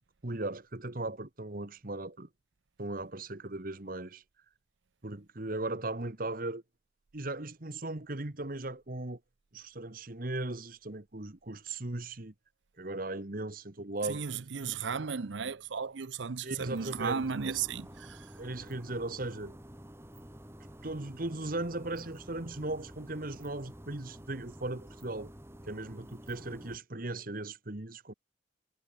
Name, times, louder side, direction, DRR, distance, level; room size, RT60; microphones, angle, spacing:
voice 1, 0.2-2.3 2.8-4.2 5.0-6.6 7.1-9.2 9.5-12.3 12.8-14.2 16.4-17.6 18.4-19.6 20.8-25.3 25.7-28.1, right 2 dB, 45° right, 1.5 m, -37 dB
voice 2, 14.1-18.3, right 6 dB, 70° right, 0.7 m, -35 dB
sound 1, 16.7-26.8, equal, 15° right, 2.0 m, -50 dB
head